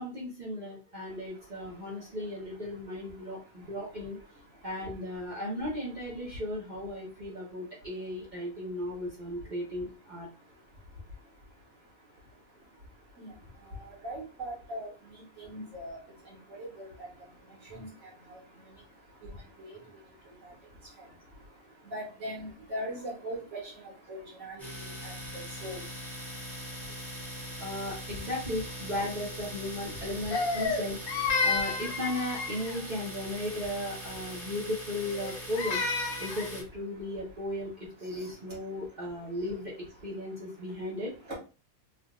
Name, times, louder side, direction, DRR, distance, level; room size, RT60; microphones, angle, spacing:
voice 1, 0.0-4.2 4.6-10.3 27.6-31.0 31.4-35.8 36.2-37.7 38.0-39.7 40.0-41.1, left 1 dB, 35° right, -5 dB, 0.9 m, -36 dB
voice 2, 1.1-3.9 4.1-4.9 5.3-5.4 5.7-5.9 6.2-6.4 7.0-28.3 28.8-28.9 29.5-31.7 32.8-33.4 34.2-34.5 38.0-39.5 40.0-40.2 40.6-40.9 41.2-41.3, equal, 60° right, -5 dB, 1.5 m, -46 dB
Domestic sounds home sounds, 24.6-36.6, equal, ahead, 0.8 m, -41 dB
Crying sobbing, 30.3-32.8 35.0-36.5, left 4 dB, 75° left, 1.0 m, -31 dB
3.4 x 2.4 x 2.4 m, 0.33 s
omnidirectional pair, 1.5 m